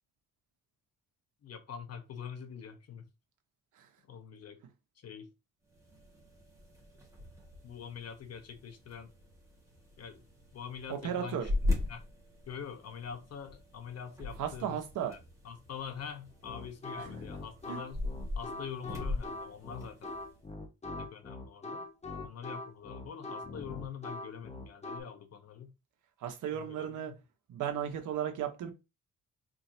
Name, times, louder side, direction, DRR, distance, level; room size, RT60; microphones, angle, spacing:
voice 1, 1.4-3.1 4.1-4.6 5.0-5.3 7.6-9.1 10.0-10.2 10.5-11.5 11.9-12.0 12.5-15.2 15.4-18.0 18.4-20.1 21.0-21.9 22.2-25.7 26.5-27.2, left 7 dB, 55° left, 1.1 m, -44 dB
sound 1, 5.7-20.4, left 2 dB, 10° right, 1.9 m, -40 dB
voice 2, 10.9-11.5 14.4-15.1 17.0-17.1 17.7-17.8 26.2-27.1 27.5-28.7, right 9 dB, 80° right, 1.2 m, -35 dB
sound 2, 16.4-25.0, left 2 dB, 20° left, 1.0 m, -42 dB
4.4 x 3.7 x 2.8 m
cardioid pair, 90°, 30 cm